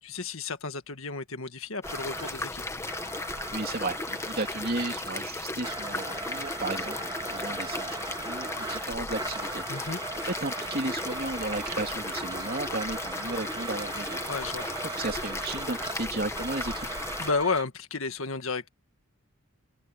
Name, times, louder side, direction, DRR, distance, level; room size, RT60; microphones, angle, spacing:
voice 1, 0.0-2.6 9.7-10.0 14.3-14.7 17.2-18.7, left 4 dB, 70° left, 1.9 m, -32 dB
sound 1, 1.8-17.3, left 2 dB, 15° left, 1.3 m, -36 dB
Domestic sounds home sounds, 1.8-5.2 5.6-17.6, right 3 dB, 20° right, 2.5 m, -39 dB
voice 2, 3.5-7.0 7.3-8.0 8.2-14.2 14.6-16.9, right 2 dB, 45° right, 3.1 m, -34 dB
head